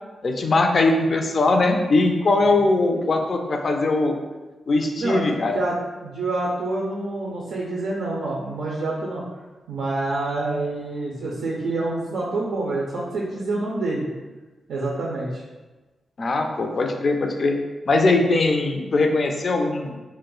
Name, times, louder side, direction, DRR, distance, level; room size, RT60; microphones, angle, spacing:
voice 1, 0.2-4.1 4.7-5.5 16.2-17.6 17.9-20.0, left 2 dB, 55° left, 4 dB, 0.3 m, -20 dB
voice 2, 6.0-9.2 9.7-14.1 14.7-15.4, right 2 dB, 90° right, -4 dB, 0.4 m, -27 dB
2.3 x 2.0 x 3.7 m, 1.2 s
cardioid pair, 60°, 0 cm